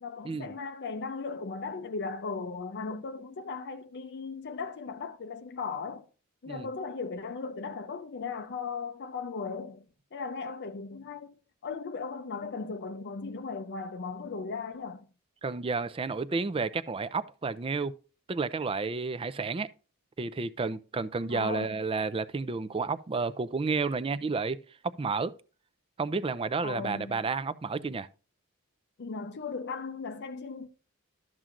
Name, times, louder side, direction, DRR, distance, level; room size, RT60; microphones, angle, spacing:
voice 1, 0.0-6.1 6.4-9.9 10.1-11.3 11.6-15.1 21.3-21.8 26.6-27.3 29.0-30.9, left 4 dB, 50° left, 0.5 m, -37 dB
voice 2, 15.4-17.9 18.3-19.7 20.2-24.6 25.0-25.3 26.0-28.1, right 4 dB, 25° right, 0.4 m, -31 dB
12.5 x 7.4 x 2.5 m
head